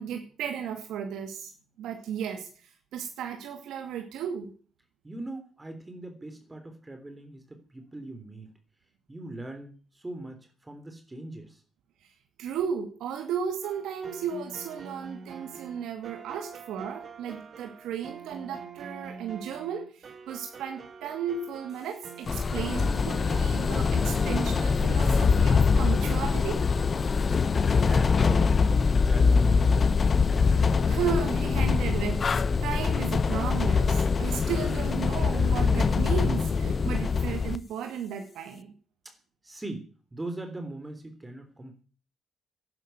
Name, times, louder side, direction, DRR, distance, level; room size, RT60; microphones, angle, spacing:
voice 1, 0.0-1.5 1.8-2.5 2.9-4.5 12.4-26.7 30.5-32.3 32.6-38.7, right 7 dB, 85° right, 4 dB, 2.3 m, -34 dB
voice 2, 5.0-8.5 9.1-11.6 27.2-27.5 27.8-28.7 29.0-30.0 39.4-39.9 40.1-41.8, right 2 dB, 15° right, 6 dB, 3.4 m, -40 dB
sound 1, 13.6-24.7, right 5 dB, 45° right, 3.1 m, -45 dB
sound 2, 22.3-37.6, left 5 dB, 40° left, 0.9 m, -23 dB
11.5 x 10.5 x 9.3 m, 0.39 s
cardioid pair, 90°, 0 cm